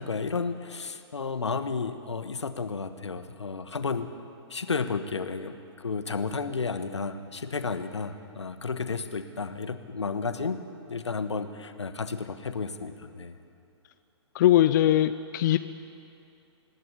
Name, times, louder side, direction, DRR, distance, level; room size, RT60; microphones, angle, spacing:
voice 1, 0.0-4.1 4.5-10.6 10.9-13.3, left 4 dB, 70° left, 10 dB, 1.3 m, -32 dB
voice 2, 14.3-15.6, left 12 dB, 40° left, 11 dB, 0.5 m, -21 dB
25.5 x 11.0 x 9.6 m, 2.7 s
figure-of-eight pair, 115°, 15 cm